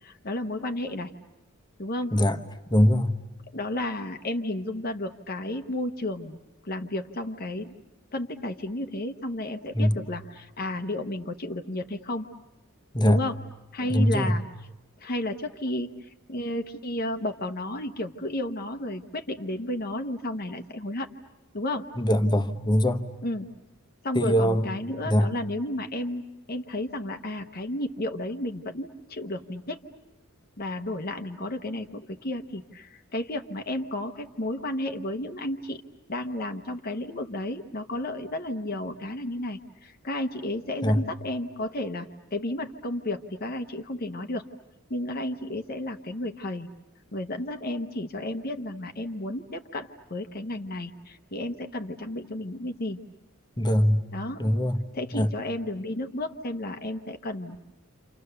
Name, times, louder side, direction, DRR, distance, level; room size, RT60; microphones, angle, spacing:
voice 1, 0.0-1.1 1.8-2.1 3.5-6.4 6.6-7.7 8.1-12.3 13.0-13.4 13.7-14.7 15.0-21.1 21.5-21.9 23.2-23.5 24.0-26.2 26.5-29.8 30.6-35.8 36.1-44.4 44.9-46.7 47.1-53.0 54.1-54.4 54.9-57.6, left 1 dB, 45° left, 1.0 m, -32 dB
voice 2, 2.7-3.2 9.7-10.0 12.9-13.2 13.9-14.3 22.0-23.0 24.1-24.7 25.1-25.3 40.8-41.0 53.6-54.1 54.4-54.8 55.1-55.3, equal, 20° left, 1.1 m, -22 dB
29.5 x 27.5 x 6.8 m
head